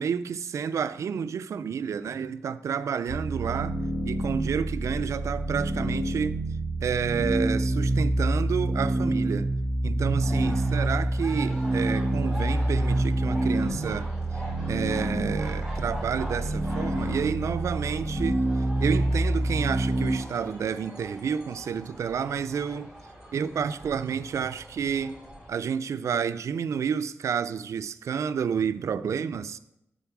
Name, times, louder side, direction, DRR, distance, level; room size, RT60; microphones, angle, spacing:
voice 1, 0.0-3.8 4.0-6.4 6.8-9.5 9.8-14.1 14.7-18.4 18.8-22.9 23.3-25.2 25.5-29.6, right 7 dB, 85° right, 0.4 m, -30 dB
sound 1, 3.1-20.2, right 1 dB, 35° left, 1.6 m, -27 dB
sound 2, 10.2-25.5, equal, 5° right, 2.8 m, -42 dB
9.1 x 3.9 x 6.0 m
wide cardioid pair, 110°, 5 cm